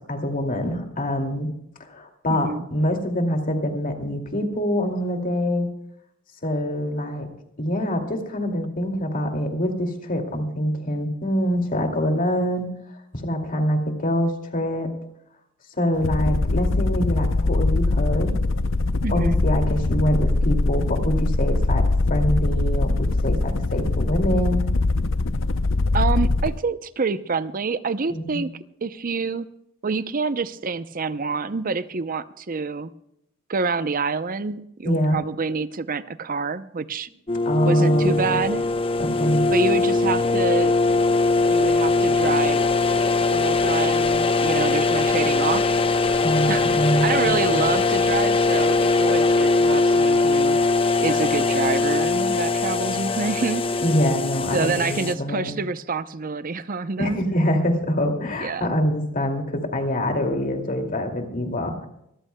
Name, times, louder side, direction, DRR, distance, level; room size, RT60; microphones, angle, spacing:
voice 1, 0.1-1.5 1.8-5.7 6.4-7.3 7.6-12.7 13.1-14.9 15.8-18.4 19.1-24.7 28.1-28.4 34.8-35.2 37.5-38.4 39.0-39.5 46.2-47.7 53.8-55.5 57.0-61.9, equal, 40° left, 3 dB, 2.4 m, -25 dB
voice 2, 2.3-2.7 19.0-19.4 25.9-28.5 28.8-29.5 29.8-32.9 33.5-37.1 37.7-38.7 39.5-40.8 41.5-42.7 43.3-45.7 46.5-46.7 47.0-50.6 51.0-53.6 54.5-57.2 58.4-58.7, right 4 dB, 45° right, 13 dB, 0.6 m, -27 dB
sound 1, 15.9-26.6, left 2 dB, 65° left, 0.6 m, -22 dB
sound 2, 37.3-55.1, left 3 dB, 25° left, 0.8 m, -21 dB
25.5 x 14.5 x 2.2 m, 0.78 s
head